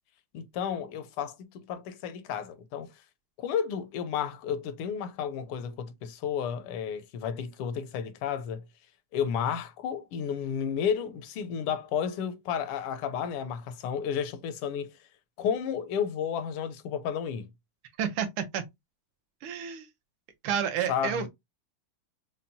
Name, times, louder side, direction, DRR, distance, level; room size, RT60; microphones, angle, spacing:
voice 1, 0.3-2.9 3.4-8.6 9.1-14.9 15.4-17.5 20.9-21.3, left 8 dB, 85° left, 1.5 m, -32 dB
voice 2, 18.0-18.6 19.4-19.9 20.4-21.3, right 8 dB, 80° right, 1.5 m, -30 dB
5.6 x 2.0 x 2.6 m
omnidirectional pair, 2.4 m